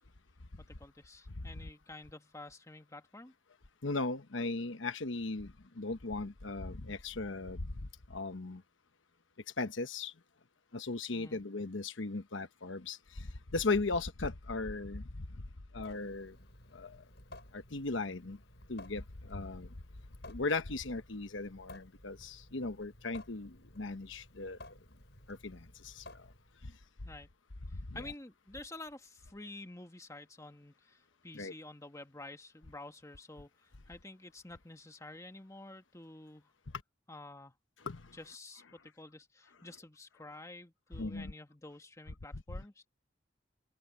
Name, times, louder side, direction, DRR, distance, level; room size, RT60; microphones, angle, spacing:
voice 1, 0.6-3.3 11.1-11.4 27.0-27.3 27.7-36.5 37.1-37.5 38.1-42.9, left 2 dB, 15° left, 1.6 m, -50 dB
voice 2, 3.8-7.7 8.1-8.6 9.6-10.1 10.7-13.3 13.5-15.3 15.7-16.4 16.7-17.0 17.5-18.4 18.7-19.7 20.3-24.6 25.3-26.0 27.9-28.0 31.3-31.5 37.8-38.1 40.9-41.3, left 3 dB, 80° left, 1.1 m, -37 dB
Water tap faucet / Sink (filling or washing) / Drip, 15.8-26.7, left 1 dB, 60° left, 7.9 m, -55 dB
head